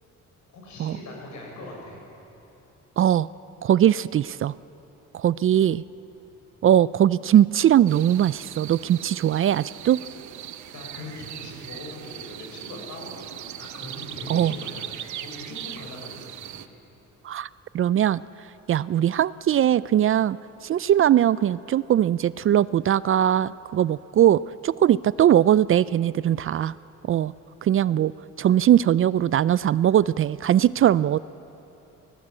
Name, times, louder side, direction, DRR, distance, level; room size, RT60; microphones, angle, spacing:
voice 1, 0.5-2.0 10.7-16.7, left 2 dB, 70° left, -1 dB, 7.2 m, -41 dB
voice 2, 3.0-3.3 3.6-4.5 5.1-5.8 6.6-10.0 14.3-14.5 17.2-17.5 17.7-18.2 18.7-20.4 20.6-26.7 27.1-27.3 27.6-28.1 28.4-31.2, right 11 dB, 45° right, 19 dB, 0.4 m, -20 dB
sound 1, 7.9-16.7, right 11 dB, 70° right, 0.9 m, -39 dB
19.5 x 18.5 x 8.8 m, 2.9 s
cardioid pair, 90°, 30 cm